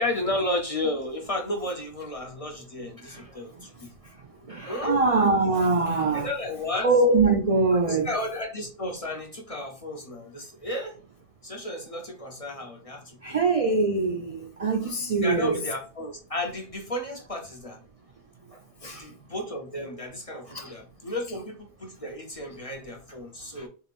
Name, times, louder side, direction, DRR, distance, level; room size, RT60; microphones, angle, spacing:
voice 1, 0.0-3.9 4.7-5.0 6.1-6.9 7.7-11.0 11.4-13.4 15.2-17.8 18.9-23.7, left 1 dB, 35° left, 0.6 m, -33 dB
voice 2, 3.0-6.3 6.8-8.1 13.2-15.6 18.8-19.1 20.5-20.8 23.5-23.7, right 3 dB, 55° right, 0.4 m, -24 dB
4.5 x 3.4 x 2.5 m
omnidirectional pair, 1.3 m